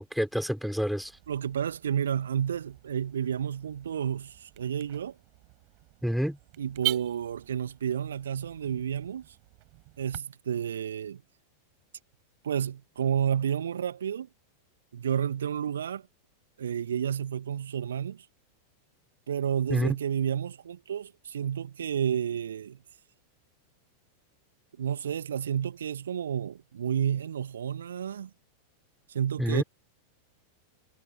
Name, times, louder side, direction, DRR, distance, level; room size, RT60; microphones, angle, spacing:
voice 1, 0.0-1.1 6.0-6.4 19.7-20.0 29.4-29.6, equal, ahead, 5.7 m, -28 dB
Car / Alarm, 1.0-10.2, right 33 dB, 45° right, 4.8 m, -42 dB
voice 2, 1.3-5.2 6.6-9.4 10.0-11.2 12.4-14.3 14.9-16.1 16.6-18.3 19.3-22.8 24.8-28.3 29.1-29.6, right 8 dB, 65° right, 1.7 m, -31 dB
figure-of-eight pair, 90°, 0 cm